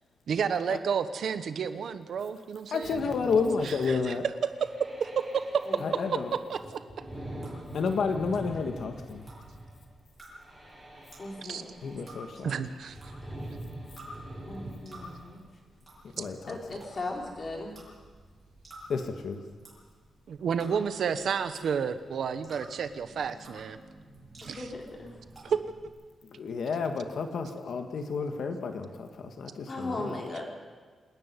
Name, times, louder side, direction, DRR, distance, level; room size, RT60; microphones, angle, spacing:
voice 1, 0.3-3.1 3.6-5.6 6.3-6.8 11.4-11.6 12.4-13.0 16.2-16.3 20.3-23.8 24.4-24.7 25.4-25.6, right 7 dB, 65° right, 11 dB, 1.0 m, -31 dB
voice 2, 2.7-4.2 5.8-6.3 7.7-9.3 11.8-12.5 16.2-16.6 18.9-19.4 26.2-30.1, left 5 dB, 60° left, 5 dB, 1.6 m, -31 dB
sound 1, 2.8-15.4, right 1 dB, 10° left, 6.6 m, -44 dB
voice 3, 5.7-6.1 11.2-11.9 14.5-15.5 16.5-17.7 20.7-21.0 24.4-25.2 29.7-30.5, left 2 dB, 30° left, 0 dB, 4.2 m, -38 dB
sound 2, 7.4-25.9, right 1 dB, 15° right, 7.8 m, -53 dB
27.0 x 10.5 x 9.7 m, 1.5 s
wide cardioid pair, 165°, 0 cm